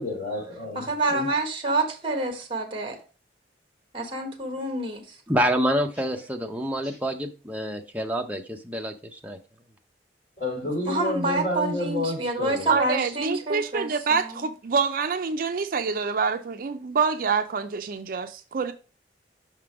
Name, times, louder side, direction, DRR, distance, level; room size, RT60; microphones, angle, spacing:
voice 1, 0.0-0.8 1.1-1.3 6.8-6.9 10.4-12.7, left 1 dB, 55° left, 3.2 m, -30 dB
voice 2, 0.7-3.0 3.9-5.2 10.8-14.4, right 2 dB, 30° right, 1.3 m, -28 dB
voice 3, 5.3-9.4, equal, 10° right, 0.6 m, -27 dB
voice 4, 12.7-18.7, right 5 dB, 50° right, 0.4 m, -26 dB
5.8 x 3.7 x 4.7 m
head